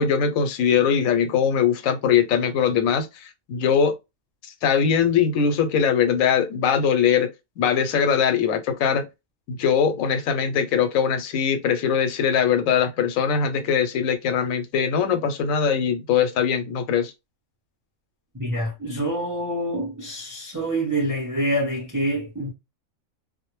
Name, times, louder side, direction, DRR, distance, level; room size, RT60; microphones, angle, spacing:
voice 1, 0.0-3.9 4.6-7.3 7.6-9.1 9.5-17.1, left 7 dB, 85° left, 1.0 m, -21 dB
voice 2, 18.3-22.5, right 1 dB, 30° right, 0.4 m, -26 dB
2.2 x 2.1 x 3.0 m
omnidirectional pair, 1.4 m